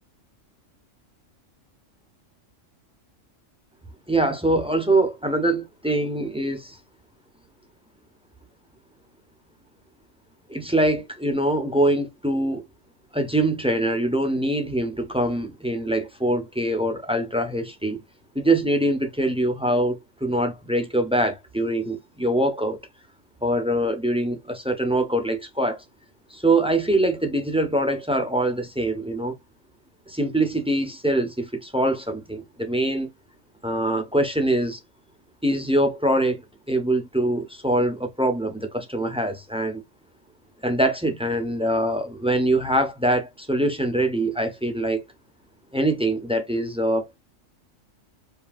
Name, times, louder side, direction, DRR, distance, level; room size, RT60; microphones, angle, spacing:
voice 1, 4.1-6.8 10.5-12.6 13.1-18.0 18.3-22.8 23.4-25.8 26.3-29.3 30.1-33.1 33.6-34.8 35.4-36.4 36.7-39.8 40.6-45.0 45.7-47.2, right 1 dB, 5° right, 1.2 m, -23 dB
5.5 x 3.2 x 2.5 m
omnidirectional pair, 1.3 m